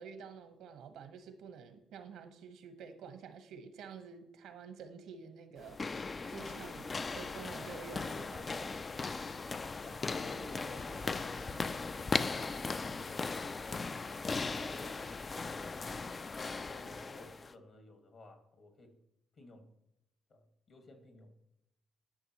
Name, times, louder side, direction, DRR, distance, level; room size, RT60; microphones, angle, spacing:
voice 1, 0.0-8.9, right 6 dB, 85° right, 9 dB, 1.1 m, -49 dB
sound 1, 5.6-17.5, left 4 dB, 30° left, 0.4 m, -38 dB
voice 2, 9.8-13.8 14.5-15.1 15.4-16.0 16.6-18.9 19.3-19.6 20.3-21.3, left 1 dB, 50° left, 5 dB, 1.8 m, -55 dB
11.5 x 6.0 x 3.0 m, 0.85 s
cardioid pair, 90°, 0 cm